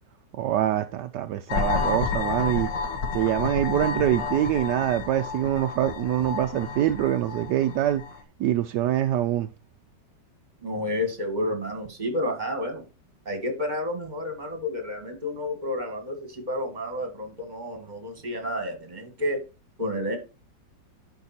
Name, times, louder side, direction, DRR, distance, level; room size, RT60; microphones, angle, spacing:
voice 1, 0.4-2.7 3.1-8.0 8.4-9.5, right 12 dB, 75° right, 1.1 m, -24 dB
sound 1, 1.5-8.2, left 4 dB, 85° left, 1.9 m, -30 dB
voice 2, 10.6-12.8 13.3-19.4 19.8-20.2, left 1 dB, 25° right, 2.0 m, -30 dB
10.5 x 4.7 x 4.3 m
omnidirectional pair, 2.0 m